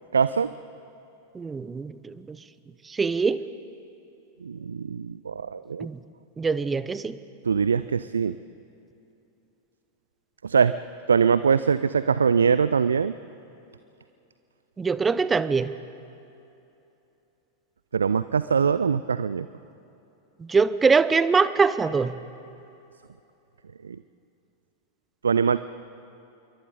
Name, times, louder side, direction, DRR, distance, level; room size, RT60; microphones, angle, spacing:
voice 1, 0.1-0.5 4.4-5.9 7.4-8.4 10.4-10.7 11.1-13.2 17.9-19.5 23.8-24.0 25.2-25.6, right 6 dB, 70° right, 15 dB, 0.4 m, -22 dB
voice 2, 1.3-1.9 3.0-3.4 5.8-5.9 6.4-7.2 14.8-15.7 20.5-22.1, right 5 dB, 15° right, 15 dB, 0.8 m, -22 dB
27.5 x 23.0 x 5.2 m, 2.9 s
figure-of-eight pair, 90°, 0 cm